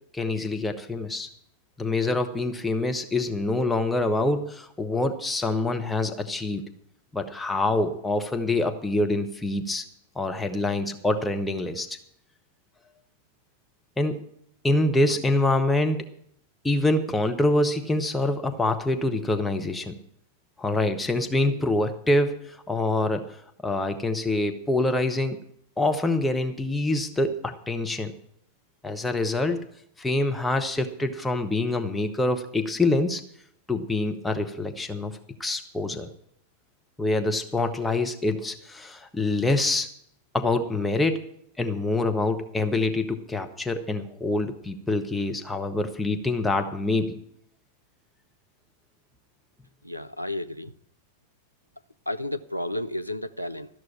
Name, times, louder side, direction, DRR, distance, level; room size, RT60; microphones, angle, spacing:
voice 1, 0.1-1.3 1.8-6.6 7.1-9.8 10.2-11.9 14.0-14.3 14.6-16.1 16.6-19.9 20.6-25.4 25.8-28.1 28.8-29.6 30.0-33.2 33.7-35.1 35.4-36.1 37.0-39.9 40.3-41.3 41.6-47.2, left 2 dB, 5° left, 0.9 m, -25 dB
voice 2, 49.8-50.7 52.1-53.7, left 1 dB, 90° right, 0.4 m, -32 dB
13.5 x 6.3 x 8.5 m
figure-of-eight pair, 90°, 0 cm